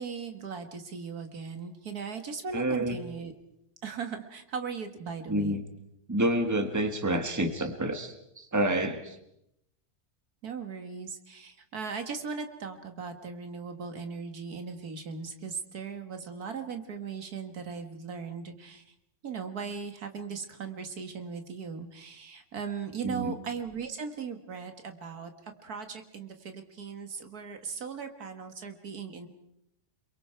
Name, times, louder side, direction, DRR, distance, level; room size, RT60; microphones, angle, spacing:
voice 1, 0.0-3.3 3.8-5.6 10.4-18.8 19.2-29.3, right 5 dB, 80° right, 7 dB, 2.2 m, -38 dB
voice 2, 2.5-3.0 5.3-5.6 6.1-9.2 23.0-23.3, right 1 dB, 10° right, 7 dB, 1.6 m, -28 dB
29.0 x 22.5 x 4.6 m, 0.79 s
omnidirectional pair, 1.6 m